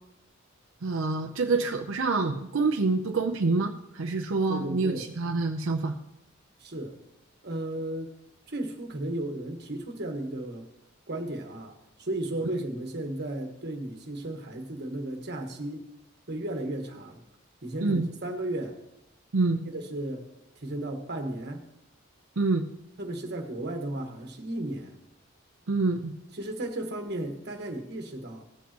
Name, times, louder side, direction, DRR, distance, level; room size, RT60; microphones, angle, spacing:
voice 1, 0.8-5.9 17.8-18.1 19.3-19.6 22.4-22.7 25.7-26.1, right 3 dB, 85° right, 4 dB, 0.6 m, -26 dB
voice 2, 4.5-5.0 6.6-7.0 7.4-8.1 8.5-10.7 11.1-15.8 16.3-17.2 17.6-18.8 19.6-20.3 20.6-21.6 23.0-24.9 26.3-28.4, right 1 dB, 55° right, 3 dB, 1.4 m, -34 dB
16.5 x 7.3 x 3.0 m, 0.86 s
head